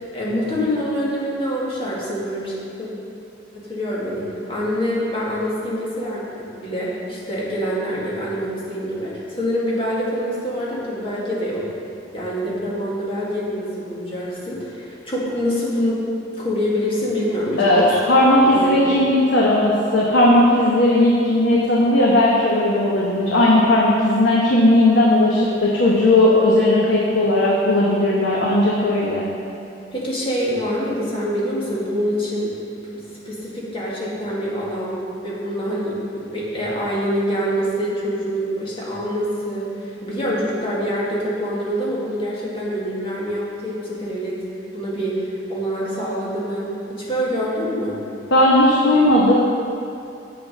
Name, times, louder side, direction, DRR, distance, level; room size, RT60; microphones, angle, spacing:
voice 1, 0.1-2.9 3.5-11.6 12.1-16.0 16.4-17.9 18.4-19.0 29.9-32.5 33.2-44.4 44.7-48.0, equal, 30° left, -7 dB, 2.1 m, -25 dB
voice 2, 17.6-29.2 48.3-49.3, left 1 dB, 80° left, -5 dB, 1.1 m, -16 dB
7.5 x 6.9 x 5.4 m, 2.6 s
head